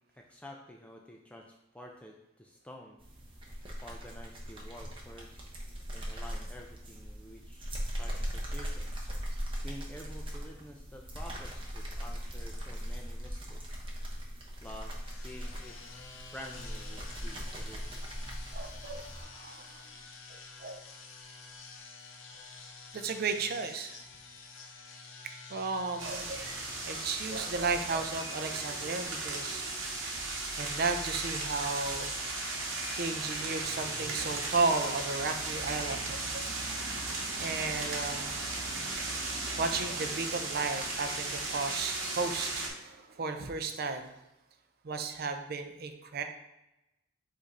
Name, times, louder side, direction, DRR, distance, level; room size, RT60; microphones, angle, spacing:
voice 1, 0.1-3.0 3.8-5.6 5.9-8.9 9.6-13.8 14.6-15.8 16.3-17.9, equal, 5° left, 0 dB, 0.3 m, -49 dB
sound 1, 3.0-19.2, equal, 25° right, 0.8 m, -39 dB
sound 2, 15.0-34.7, left 4 dB, 75° left, 0.7 m, -50 dB
voice 2, 18.5-19.9 20.3-20.9 22.9-24.0 25.5-26.5 26.8-29.6 30.6-32.1 33.0-36.5 37.4-38.4 39.3-44.2 44.8-46.2, right 4 dB, 50° right, 7 dB, 0.5 m, -34 dB
sound 3, 26.0-42.7, right 2 dB, 90° right, 0.9 m, -36 dB
5.1 x 2.6 x 4.1 m, 0.92 s
head